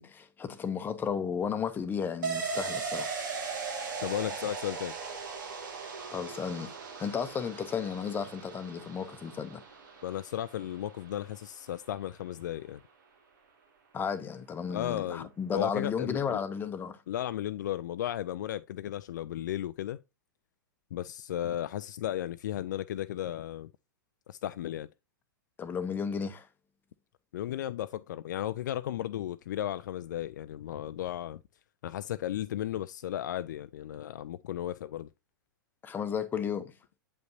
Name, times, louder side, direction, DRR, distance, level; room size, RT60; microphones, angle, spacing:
voice 1, 0.0-3.1 6.1-9.6 13.9-17.0 25.6-26.5 35.8-36.7, left 6 dB, 20° left, 0.8 m, -33 dB
sound 1, 2.2-11.6 11.9-12.0, right 5 dB, 65° right, 1.9 m, -38 dB
voice 2, 4.0-4.9 10.0-12.8 14.7-16.4 17.1-20.0 20.9-23.7 24.3-24.9 27.3-31.4 31.8-35.1, left 12 dB, 60° left, 0.4 m, -35 dB
8.1 x 5.3 x 2.6 m
figure-of-eight pair, 100°, 11 cm